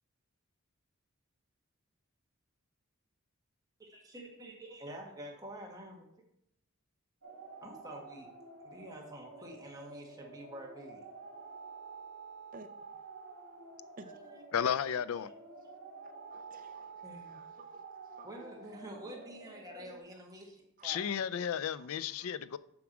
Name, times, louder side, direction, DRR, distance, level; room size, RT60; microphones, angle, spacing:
voice 1, 3.8-6.1 7.6-8.3 8.6-11.0 14.1-14.3 17.0-17.4 18.2-21.0, right 1 dB, 15° right, 1.6 m, -48 dB
sound 1, 7.2-20.0, right 4 dB, 75° right, 2.2 m, -50 dB
voice 2, 14.5-15.3 20.8-22.6, left 8 dB, 75° left, 0.4 m, -33 dB
voice 3, 16.3-18.3 20.8-21.1 21.7-22.4, right 3 dB, 40° right, 0.6 m, -55 dB
7.2 x 4.8 x 6.0 m
head